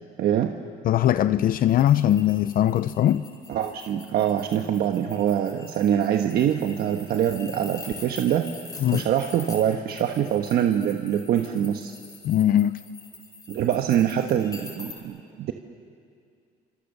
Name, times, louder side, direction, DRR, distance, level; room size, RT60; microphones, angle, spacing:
voice 1, 0.2-0.5 3.5-8.5 8.9-11.9 13.5-15.5, right 10 dB, 65° right, 5 dB, 1.3 m, -24 dB
voice 2, 0.8-3.2 8.8-9.0 12.2-12.7, left 11 dB, 60° left, 13 dB, 0.6 m, -20 dB
sound 1, 1.7-15.0, left 3 dB, 20° left, 6.0 m, -44 dB
28.5 x 26.5 x 6.7 m, 2.3 s
cardioid pair, 110°, 17 cm